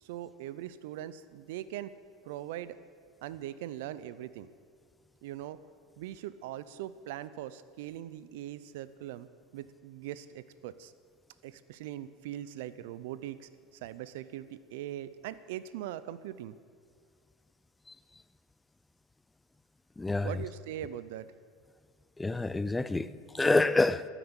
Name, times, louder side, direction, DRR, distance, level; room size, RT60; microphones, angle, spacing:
voice 1, 0.0-1.9 2.3-2.8 3.2-4.5 5.2-5.6 6.0-9.3 9.5-10.9 11.4-13.5 13.8-16.6 20.2-21.3, right 12 dB, 75° right, 0.6 m, -41 dB
voice 2, 20.0-20.4 22.2-24.1, left 2 dB, 10° left, 0.5 m, -27 dB
12.5 x 10.0 x 8.9 m
supercardioid pair, 125°, 0 cm